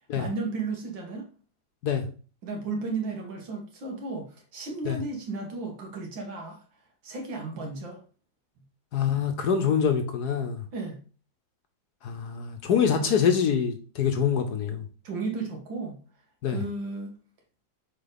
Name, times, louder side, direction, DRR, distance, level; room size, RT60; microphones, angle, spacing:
voice 1, 0.1-1.3 2.4-6.6 7.0-8.0 10.7-11.0 15.0-16.0 16.5-17.1, right 3 dB, 75° right, 2 dB, 2.3 m, -34 dB
voice 2, 8.9-10.6 12.0-14.8 16.4-16.6, left 7 dB, 60° left, 6 dB, 1.3 m, -25 dB
6.7 x 4.6 x 4.0 m, 0.38 s
omnidirectional pair, 2.1 m